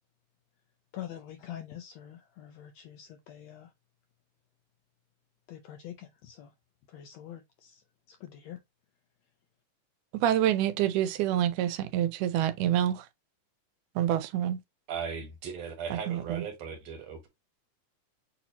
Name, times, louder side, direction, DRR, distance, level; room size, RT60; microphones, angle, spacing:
voice 1, 0.9-3.7 5.5-6.5 6.9-8.6, left 11 dB, 80° left, 1.5 m, -45 dB
voice 2, 10.1-13.1 14.0-14.6 15.9-16.4, right 11 dB, 85° right, 2.1 m, -27 dB
voice 3, 14.9-17.3, right 6 dB, 60° right, 2.3 m, -37 dB
6.7 x 2.8 x 2.8 m
omnidirectional pair, 3.6 m